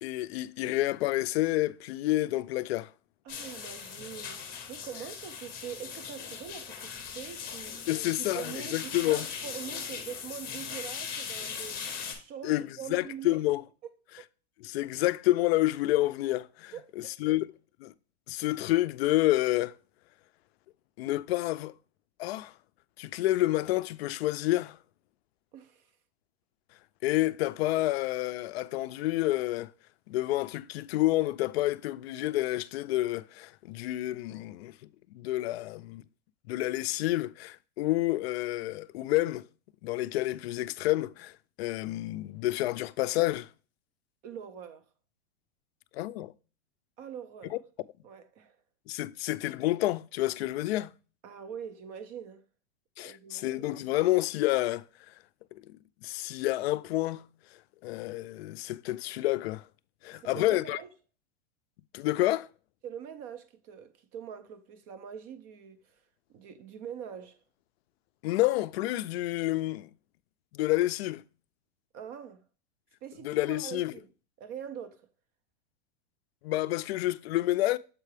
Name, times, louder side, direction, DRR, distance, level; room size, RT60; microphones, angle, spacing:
voice 1, 0.0-2.9 7.9-9.3 12.4-13.6 14.6-17.5 17.8-17.9 18.3-19.7 21.0-21.7 22.2-22.5 23.0-24.8 27.0-29.7 30.1-34.7 35.1-36.0 36.5-39.5 39.8-43.5 45.9-46.3 47.5-47.6 48.9-50.9 53.0-55.1 56.0-57.2 57.8-59.7 60.0-60.8 61.9-62.5 68.2-69.9 70.5-71.2 73.2-73.9 76.4-77.8, left 17 dB, 60° left, 0.4 m, -29 dB
voice 2, 3.2-7.9 8.2-11.9 12.1-13.4 14.2-14.3 16.7-17.2 25.5-25.9 44.2-44.9 47.0-47.6 48.0-48.6 51.2-52.4 53.0-53.7 60.1-60.9 62.8-66.0 66.3-67.4 71.9-72.4 73.0-74.1 74.4-75.1, right 8 dB, 25° right, 0.4 m, -43 dB
sound 1, 3.3-12.1, left 7 dB, 25° left, 1.4 m, -39 dB
7.4 x 4.6 x 3.2 m
supercardioid pair, 150°, 36 cm